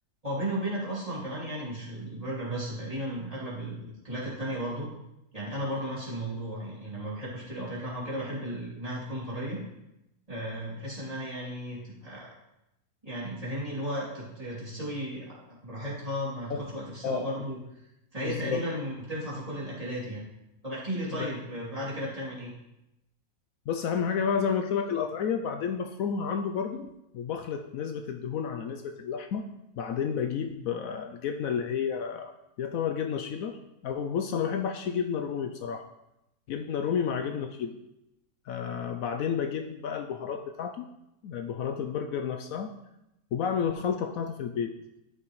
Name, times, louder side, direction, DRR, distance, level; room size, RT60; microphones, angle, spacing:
voice 1, 0.2-4.9 5.3-9.6 10.3-12.3 13.0-17.6 18.1-20.2 20.6-22.5, equal, 25° right, -8 dB, 3.0 m, -35 dB
voice 2, 18.2-18.6 21.2-21.3 23.7-29.5 29.8-32.3 32.6-33.6 33.8-35.9 36.5-37.7 38.5-40.9 41.2-42.7 43.3-44.7, left 7 dB, 70° left, 6 dB, 1.0 m, -31 dB
12.5 x 6.0 x 3.2 m, 0.89 s
omnidirectional pair, 1.6 m